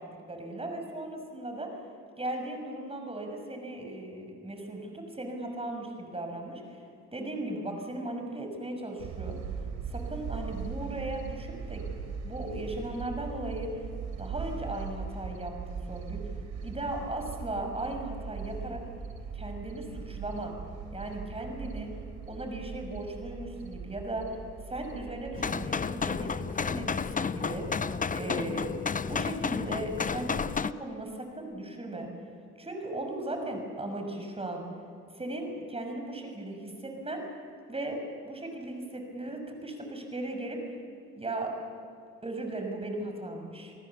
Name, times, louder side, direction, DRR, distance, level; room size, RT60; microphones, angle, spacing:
voice 1, 0.3-1.8 2.2-6.8 7.1-9.4 9.9-11.8 12.2-13.9 14.2-16.2 16.6-18.8 19.3-20.6 20.9-21.9 22.3-24.4 24.7-27.8 28.1-28.7 29.1-32.1 32.6-34.6 35.1-37.2 37.7-40.6 41.2-41.6 42.2-43.7, right 1 dB, 20° right, 4 dB, 6.2 m, -37 dB
sound 1, 9.0-25.9, right 5 dB, 85° right, 3.4 m, -40 dB
sound 2, 25.3-30.7, left 5 dB, 25° left, 0.7 m, -31 dB
29.0 x 19.0 x 7.2 m, 2.5 s
cardioid pair, 90°, 30 cm